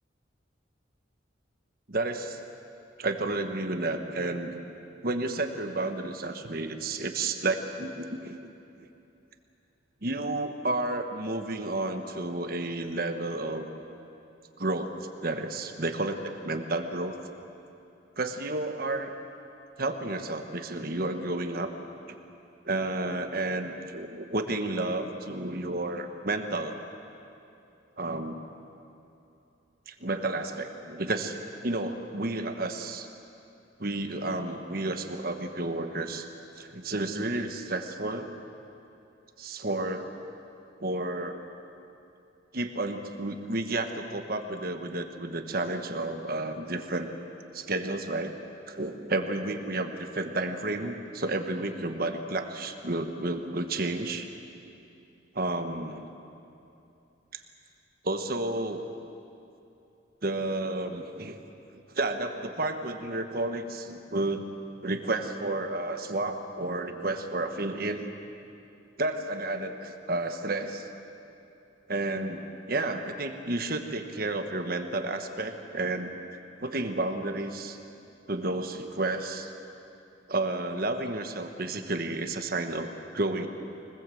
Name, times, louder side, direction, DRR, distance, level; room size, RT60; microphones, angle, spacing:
voice 1, 1.9-2.4 3.0-4.6 5.0-8.4 10.0-13.7 14.6-14.9 15.2-16.2 16.4-17.2 18.2-19.1 19.8-21.7 22.1-22.2 22.6-26.8 28.0-28.4 29.9-31.4 31.6-33.1 33.8-36.3 36.6-38.3 39.4-40.1 40.8-41.4 42.5-47.1 47.5-48.3 48.7-54.3 55.3-56.1 57.3-57.4 58.0-58.8 60.2-61.4 61.9-64.5 64.8-68.1 69.0-70.9 71.9-76.1 76.6-77.8 78.3-79.5 80.3-83.5, right 2 dB, 50° right, 6 dB, 1.3 m, -31 dB
24.5 x 20.5 x 7.8 m, 2.8 s
head